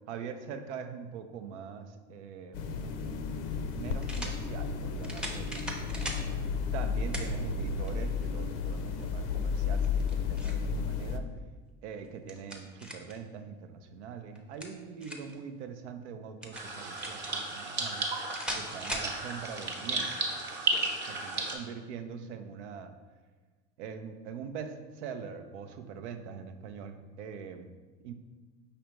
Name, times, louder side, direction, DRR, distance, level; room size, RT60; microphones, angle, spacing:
voice 1, 0.1-2.9 3.7-6.2 6.7-11.3 11.8-18.1 18.5-20.3 20.7-22.9 23.8-28.1, right 6 dB, 90° right, 8 dB, 0.5 m, -43 dB
sound 1, 2.5-11.2, left 5 dB, 65° left, 0.5 m, -33 dB
sound 2, 2.8-2.9 4.0-4.4 5.0-6.2 7.1-7.3 7.9-8.0 9.8-10.6 12.0-13.2 14.3-15.4 16.4-17.3 18.3-19.1, equal, 5° right, 0.5 m, -39 dB
sound 3, 16.5-21.6, right 3 dB, 35° right, 0.8 m, -34 dB
5.2 x 3.3 x 2.9 m, 1.3 s
supercardioid pair, 95°, 34 cm